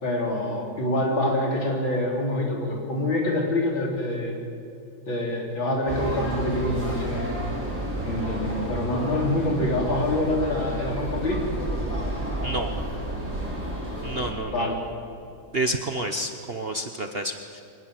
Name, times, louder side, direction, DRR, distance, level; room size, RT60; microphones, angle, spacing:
voice 1, 0.0-4.4 5.1-7.4 8.0-11.4 14.3-14.8, left 1 dB, 75° left, 0 dB, 4.6 m, -26 dB
sound 1, 5.9-14.3, right 1 dB, 5° right, 6.6 m, -31 dB
voice 2, 14.0-14.8 15.5-17.6, right 1 dB, 40° right, 5 dB, 0.9 m, -29 dB
23.0 x 19.5 x 7.8 m, 2.8 s
omnidirectional pair, 2.1 m